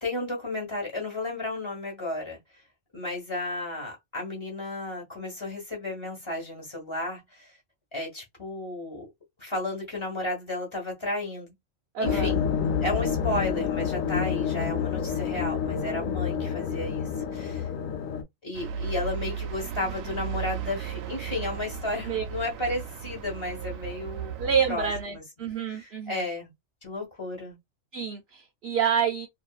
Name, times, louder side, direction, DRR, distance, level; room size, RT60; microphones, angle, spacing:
voice 1, 0.0-2.4 2.9-7.5 7.9-9.1 9.4-11.5 12.0-12.4 12.8-17.7 18.4-24.4 24.7-25.2 25.7-26.5 26.8-27.6, left 2 dB, 25° left, 1.2 m, -33 dB
voice 2, 11.9-12.3 22.1-22.2 24.4-26.3 27.9-29.3, right 6 dB, 60° right, 0.9 m, -28 dB
sound 1, 12.0-18.2, left 7 dB, 85° left, 1.0 m, -28 dB
sound 2, 18.5-25.0, right 8 dB, 85° right, 1.0 m, -35 dB
2.7 x 2.5 x 2.3 m
omnidirectional pair, 1.4 m